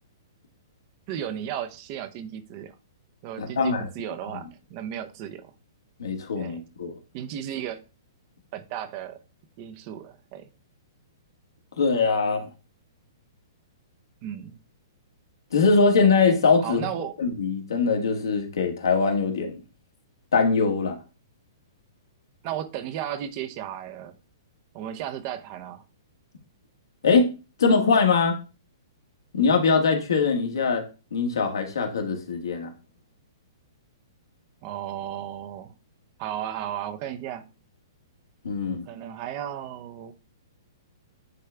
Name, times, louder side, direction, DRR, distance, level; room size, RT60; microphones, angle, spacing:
voice 1, 1.1-2.7 3.2-5.5 6.4-6.6 7.1-7.8 8.5-9.2 9.6-10.5 14.2-14.6 16.6-17.2 22.4-24.2 24.7-25.8 34.6-35.7 36.2-37.5 38.8-40.1, right 10 dB, 40° right, 0.8 m, -34 dB
voice 2, 3.4-3.9 6.0-7.0 11.8-12.5 15.5-16.9 17.2-19.6 20.3-21.0 27.0-27.3 27.6-28.4 29.3-30.8 31.1-32.7 38.4-38.8, left 4 dB, 75° left, 1.6 m, -22 dB
9.4 x 3.3 x 3.4 m
hypercardioid pair, 120°, 2 cm